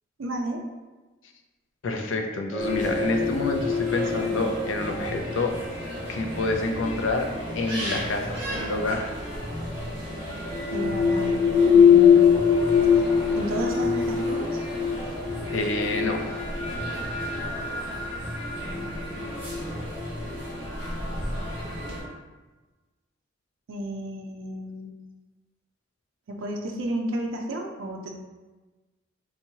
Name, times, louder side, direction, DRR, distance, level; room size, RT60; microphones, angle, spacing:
voice 1, 0.2-0.6 10.7-11.3 11.7-12.5 13.3-14.6 18.5-19.1 23.7-24.9 26.3-28.2, right 1 dB, 80° right, 1 dB, 0.4 m, -32 dB
voice 2, 1.8-5.5 6.1-7.3 7.6-9.1 15.5-16.2, left 2 dB, 75° left, 3 dB, 0.5 m, -28 dB
sound 1, 2.5-8.6 9.7-22.1, left 7 dB, 5° left, 0.3 m, -24 dB
sound 2, 2.6-22.0, equal, 25° right, 1.3 m, -34 dB
3.5 x 2.9 x 2.8 m, 1.2 s
head